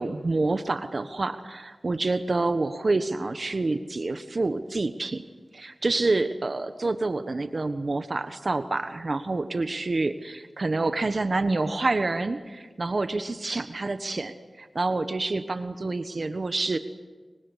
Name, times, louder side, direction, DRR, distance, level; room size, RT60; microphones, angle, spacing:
voice 1, 0.0-5.2 5.5-16.8, right 3 dB, 60° right, 9 dB, 1.3 m, -27 dB
25.0 x 24.0 x 8.2 m, 1.4 s
wide cardioid pair, 55°, 0 cm